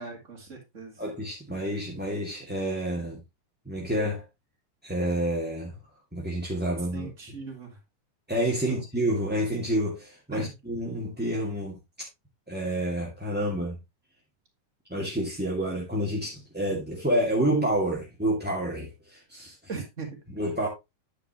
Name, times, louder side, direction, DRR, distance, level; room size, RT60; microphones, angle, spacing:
voice 1, 0.0-1.0 6.9-7.8 8.6-8.8 10.3-10.5 19.7-20.2, right 4 dB, 25° right, 2.3 m, -39 dB
voice 2, 1.0-3.2 3.6-4.2 4.8-5.8 6.1-7.1 8.3-12.1 12.5-13.8 14.9-19.5 20.3-20.7, right 1 dB, 5° right, 1.4 m, -29 dB
9.7 x 6.9 x 3.1 m
omnidirectional pair, 3.7 m